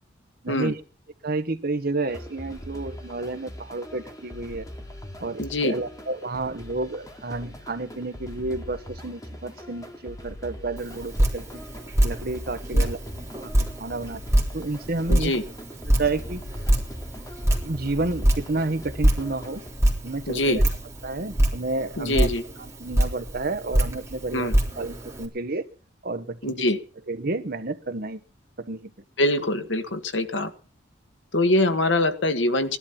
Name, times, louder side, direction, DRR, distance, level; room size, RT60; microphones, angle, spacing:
voice 1, 1.2-4.7 5.2-11.6 12.0-13.0 13.4-13.5 13.8-15.3 15.8-16.4 17.6-19.6 20.0-20.7 21.0-22.3 22.8-25.6 26.0-26.6 27.1-28.2 28.6-28.9, right 2 dB, 55° right, 9 dB, 1.3 m, -30 dB
sound 1, 2.1-19.7, left 1 dB, 20° left, 2.6 m, -42 dB
voice 2, 5.4-5.7 12.7-12.8 15.1-15.4 20.3-20.6 22.0-22.4 24.3-24.5 26.4-26.8 29.2-30.5 31.3-32.8, left 1 dB, 80° left, 8 dB, 1.7 m, -24 dB
Drip, 10.8-25.3, right 1 dB, 15° right, 3.9 m, -25 dB
18.0 x 11.5 x 5.8 m, 0.40 s
head